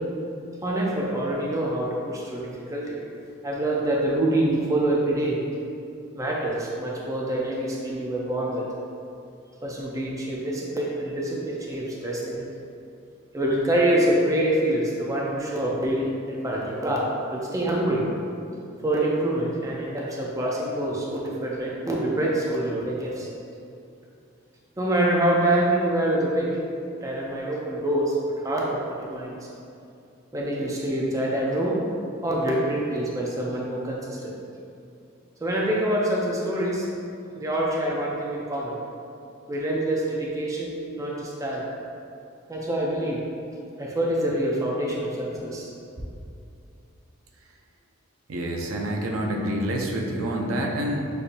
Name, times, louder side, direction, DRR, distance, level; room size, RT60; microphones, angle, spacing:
voice 1, 0.6-3.0 3.4-5.4 6.1-8.6 9.6-12.4 13.3-18.0 18.8-23.3 24.8-26.6 27.0-29.3 30.3-31.8 32.2-34.4 35.4-36.9 37.3-38.8 39.5-41.7 42.5-43.2 43.8-45.7, right 1 dB, 15° right, -3 dB, 0.4 m, -26 dB
voice 2, 48.3-51.1, right 1 dB, 80° right, 0 dB, 0.5 m, -27 dB
6.5 x 2.7 x 2.5 m, 2.6 s
head